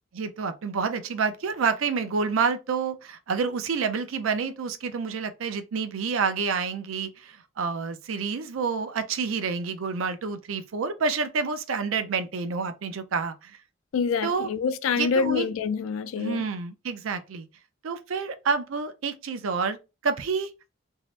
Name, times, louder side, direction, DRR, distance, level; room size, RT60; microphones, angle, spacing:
voice 1, 0.1-13.6 14.2-14.5 15.0-15.5 16.2-17.5 17.8-19.8 20.0-20.5, right 5 dB, 85° right, 0.5 m, -28 dB
voice 2, 13.9-16.4, left 5 dB, 85° left, 0.3 m, -26 dB
2.6 x 2.0 x 3.2 m
head